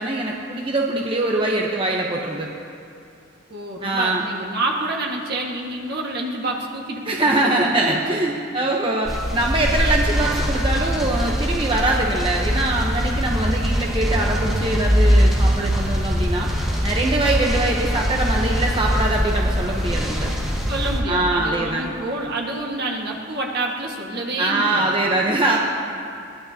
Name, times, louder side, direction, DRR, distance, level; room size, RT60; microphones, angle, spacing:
voice 1, 0.0-2.5 3.8-4.2 7.0-16.5 16.8-20.3 21.1-21.9 24.4-25.6, right 2 dB, 25° right, -1 dB, 1.0 m, -23 dB
voice 2, 3.5-8.2 20.7-24.9, right 2 dB, 55° right, -1 dB, 1.8 m, -28 dB
sound 1, 9.0-21.0, equal, ahead, 2.0 m, -22 dB
21.5 x 18.5 x 2.9 m, 2.6 s
head